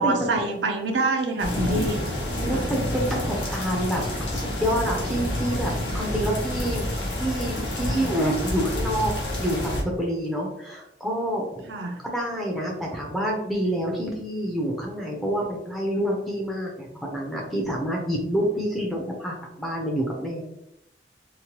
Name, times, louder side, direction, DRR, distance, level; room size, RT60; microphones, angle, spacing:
voice 1, 0.0-2.0 2.5-2.7 7.9-8.1 11.7-12.0, right 3 dB, 70° right, 4 dB, 0.5 m, -26 dB
sound 1, 1.4-9.8, left 1 dB, 80° left, 0.8 m, -28 dB
voice 2, 2.3-4.0 4.3-6.9 7.2-9.1 9.4-11.7 12.0-20.4, equal, ahead, -3 dB, 0.4 m, -27 dB
2.9 x 2.1 x 2.8 m, 0.82 s
head